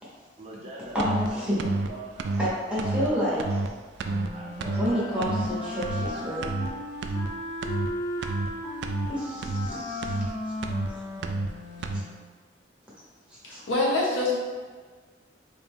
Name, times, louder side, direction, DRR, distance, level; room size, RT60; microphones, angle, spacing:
voice 1, 0.4-3.6 4.3-5.3 6.0-6.6, right 1 dB, 35° right, -5 dB, 0.7 m, -43 dB
voice 2, 0.9-1.7 2.4-3.4 4.8-6.4 9.1-10.2 13.5-13.6, equal, 5° right, -9 dB, 1.1 m, -29 dB
sound 1, 1.0-1.3 1.6-1.9 2.2-2.5 2.8-3.1 3.4-3.7 4.0-4.3 4.6-4.9 5.2-5.5 5.8-6.1 6.4-6.7 7.0-7.3 7.6-7.9 8.2-8.5 8.8-9.1 9.4-9.7 10.0-10.3 10.6-10.9 11.2-11.5 11.8-12.0, right 3 dB, 65° right, 0.3 m, -29 dB
Wind instrument woodwind instrument, 4.0-12.2, left 1 dB, 40° left, 0.8 m, -36 dB
voice 3, 13.4-14.3, left 2 dB, 75° left, -4 dB, 0.9 m, -25 dB
3.8 x 2.5 x 3.6 m, 1.5 s
head